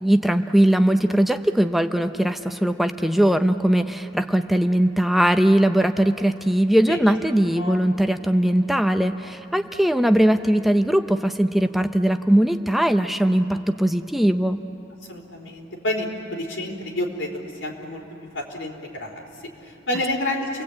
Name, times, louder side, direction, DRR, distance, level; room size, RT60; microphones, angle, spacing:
voice 1, 0.0-14.6, right 1 dB, ahead, 7 dB, 0.6 m, -20 dB
voice 2, 7.5-7.8 15.1-17.3 17.6-18.0 18.3-19.1 19.9-20.5, left 1 dB, 90° left, 1 dB, 3.9 m, -28 dB
30.0 x 21.0 x 8.5 m, 3.0 s
head